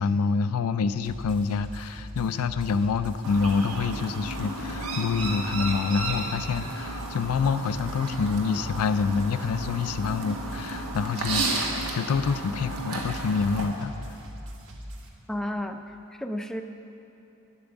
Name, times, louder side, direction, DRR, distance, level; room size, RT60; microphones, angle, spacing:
voice 1, 0.0-13.9, left 5 dB, 75° left, 12 dB, 0.4 m, -27 dB
sound 1, 1.0-15.1, equal, 60° right, 1.2 m, -41 dB
Chirp tweet, 3.2-13.7, right 2 dB, 90° right, 1.4 m, -33 dB
voice 2, 15.3-15.8 16.2-16.6, left 1 dB, ahead, 5 dB, 0.4 m, -31 dB
10.0 x 8.6 x 7.0 m, 2.8 s
head